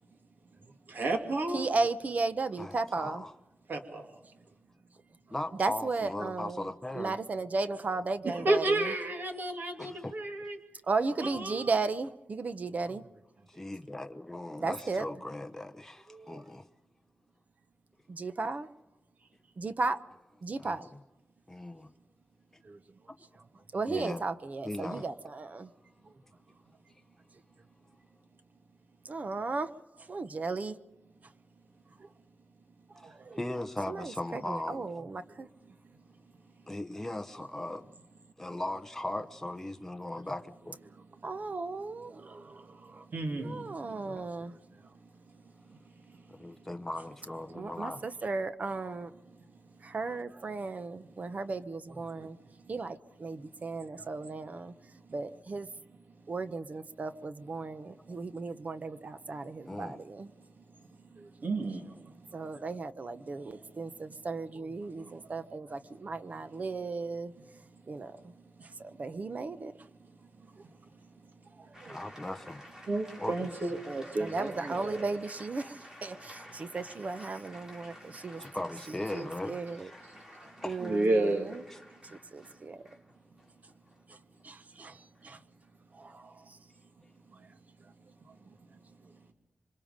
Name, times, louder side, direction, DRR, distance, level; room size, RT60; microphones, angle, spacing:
voice 1, 0.9-1.7 3.7-4.0 8.2-10.6 11.2-11.7 43.1-43.7 61.4-61.9 72.9-75.2 80.8-81.5, right 2 dB, 65° right, 2.8 m, -31 dB
voice 2, 1.5-3.2 5.6-6.6 6.9-8.9 10.9-13.1 14.6-15.0 16.1-16.4 18.1-18.7 19.6-20.0 20.4-20.8 22.6-22.8 23.7-25.7 29.0-29.7 30.1-30.8 33.0-33.4 33.9-35.5 41.2-43.0 43.4-44.5 47.5-49.1 49.8-52.4 52.7-54.7 55.1-55.7 56.3-60.3 61.2-61.3 62.3-67.3 67.9-68.1 68.8-69.7 71.8-72.0 74.2-78.4 79.1-79.9 80.6-81.6 82.3-82.8 84.4-85.4 85.9-86.3, right 3 dB, 45° right, 1.0 m, -35 dB
voice 3, 2.6-3.3 5.3-7.2 9.8-10.5 13.5-16.7 20.6-21.0 21.5-21.9 23.9-24.2 24.6-25.1 33.0-34.9 36.7-37.9 38.4-40.8 43.9-44.2 46.3-48.0 59.7-60.0 71.9-72.6 73.2-73.5 78.4-80.9, left 1 dB, 10° left, 0.8 m, -39 dB
sound 1, 71.7-86.2, equal, 20° right, 4.5 m, -52 dB
27.5 x 25.0 x 5.2 m
wide cardioid pair, 160°, 4 cm